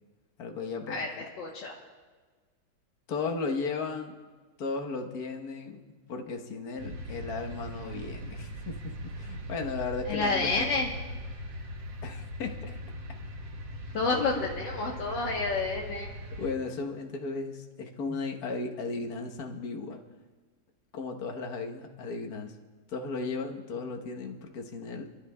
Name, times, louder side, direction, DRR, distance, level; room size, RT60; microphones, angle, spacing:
voice 1, 0.4-1.3 3.1-4.2 4.6-5.8 6.1-10.7 12.0-12.8 16.3-20.0 20.9-22.6 22.9-25.2, left 4 dB, 60° left, 2 dB, 1.6 m, -35 dB
voice 2, 1.4-1.7 10.1-10.9 13.9-16.1, left 3 dB, 80° left, -2 dB, 1.8 m, -29 dB
sound 1, 6.8-16.5, equal, 80° right, 1.8 m, -40 dB
28.5 x 12.5 x 2.2 m, 1.4 s
omnidirectional pair, 2.0 m